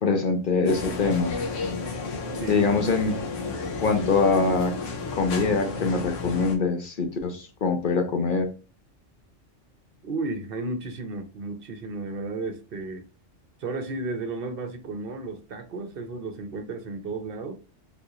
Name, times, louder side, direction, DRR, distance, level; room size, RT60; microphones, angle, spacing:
voice 1, 0.0-1.3 2.5-3.2 3.8-4.7 5.2-8.5, left 4 dB, 50° left, 0.7 m, -23 dB
sound 1, 0.6-6.6, left 4 dB, 90° left, 1.1 m, -32 dB
voice 2, 10.0-13.1 13.6-17.5, right 3 dB, 55° right, 0.8 m, -33 dB
3.6 x 2.9 x 2.4 m
omnidirectional pair, 1.2 m